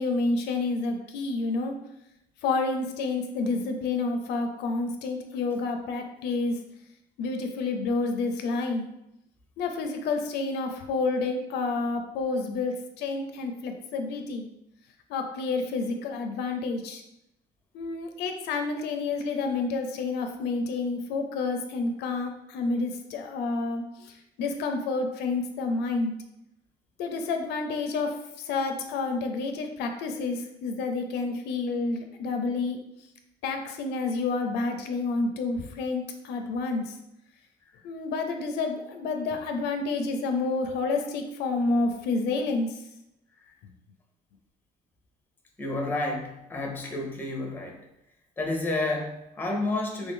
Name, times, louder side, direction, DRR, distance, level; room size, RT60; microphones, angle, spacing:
voice 1, 0.0-1.8 2.4-6.6 7.2-8.9 9.6-14.5 15.1-17.0 17.7-26.2 27.0-32.8 33.4-36.9 37.8-42.8 43.6-43.7, left 3 dB, 80° left, 5 dB, 0.5 m, -29 dB
voice 2, 45.6-47.8 48.4-50.1, left 2 dB, 10° left, 2 dB, 0.7 m, -30 dB
3.2 x 2.6 x 3.6 m, 0.84 s
cardioid pair, 110°, 17 cm